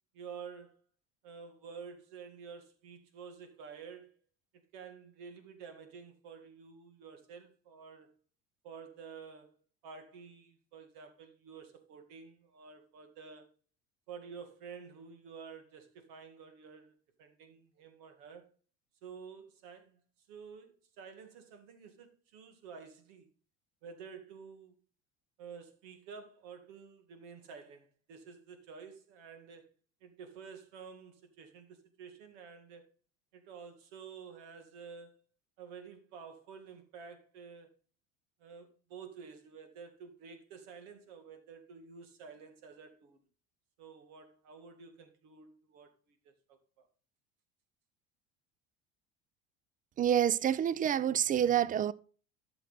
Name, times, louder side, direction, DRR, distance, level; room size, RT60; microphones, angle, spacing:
voice 1, 0.1-0.8 1.2-4.1 4.5-8.1 8.6-9.6 9.8-13.5 14.1-18.4 19.0-20.0 20.3-23.3 23.8-24.7 25.4-29.7 30.0-32.9 33.3-35.2 35.6-37.7 38.4-43.2 43.8-46.9, right 6 dB, 70° right, 2.2 m, -50 dB
voice 2, 50.0-51.9, right 10 dB, 25° right, 0.5 m, -28 dB
12.5 x 6.1 x 4.1 m
hypercardioid pair, 85°, 32 cm